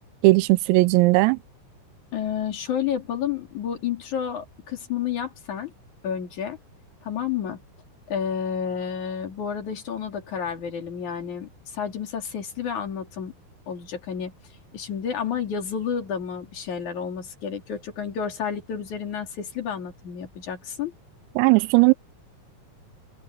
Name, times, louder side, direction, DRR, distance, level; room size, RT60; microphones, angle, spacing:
voice 1, 0.2-1.4 21.4-21.9, right 23 dB, 85° right, 3.4 m, -17 dB
voice 2, 2.1-5.7 6.0-6.6 7.0-7.6 8.1-13.3 13.7-14.3 14.7-20.9, left 8 dB, 40° left, 3.9 m, -30 dB
omnidirectional pair, 6.0 m